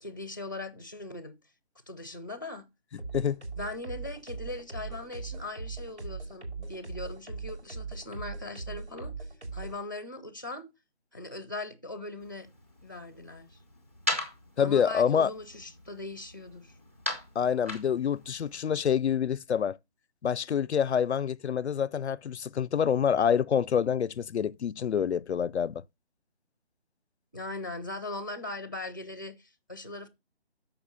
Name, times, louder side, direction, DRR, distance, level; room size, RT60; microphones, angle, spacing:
voice 1, 0.0-1.3 1.9-2.7 3.6-10.7 11.1-12.5 12.8-13.6 14.6-16.7 27.3-30.1, left 2 dB, 20° left, 0.6 m, -40 dB
sound 1, 3.0-9.8, right 4 dB, 90° right, 4.8 m, -39 dB
sound 2, 12.2-18.6, left 2 dB, 15° right, 0.7 m, -39 dB
voice 2, 14.6-15.3 17.4-19.8 20.2-25.8, left 8 dB, 85° left, 0.5 m, -27 dB
14.0 x 5.5 x 2.7 m
figure-of-eight pair, 170°, 33 cm